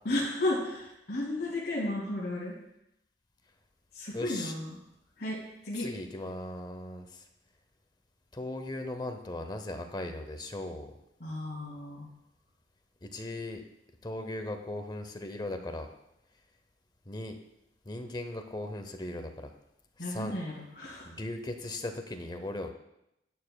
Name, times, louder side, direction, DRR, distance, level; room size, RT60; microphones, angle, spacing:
voice 1, 0.0-2.5 3.9-4.7 5.2-5.4 5.6-5.9 11.2-12.1 20.0-21.1, left 1 dB, 60° left, -8 dB, 2.6 m, -33 dB
voice 2, 4.1-4.5 5.8-7.2 8.3-10.9 13.0-13.6 14.0-15.9 17.1-17.4 17.9-19.5 20.0-20.3 21.0-22.7, left 1 dB, 25° left, 6 dB, 0.7 m, -38 dB
11.0 x 9.7 x 2.3 m, 0.82 s
head